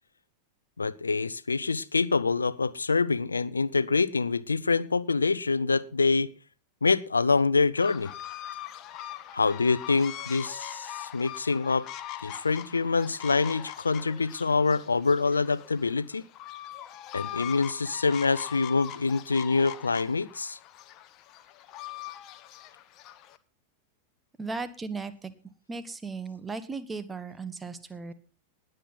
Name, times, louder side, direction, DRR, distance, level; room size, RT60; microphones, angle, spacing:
voice 1, 0.8-6.3 6.8-8.1 9.3-11.9 12.2-16.3 17.1-20.6, left 4 dB, 75° left, 0.6 m, -26 dB
sound 1, 7.8-23.4, left 12 dB, 35° left, 0.9 m, -42 dB
voice 2, 24.4-25.3 25.7-28.1, right 4 dB, 15° right, 1.2 m, -36 dB
20.0 x 7.8 x 4.0 m
figure-of-eight pair, 90°, 0 cm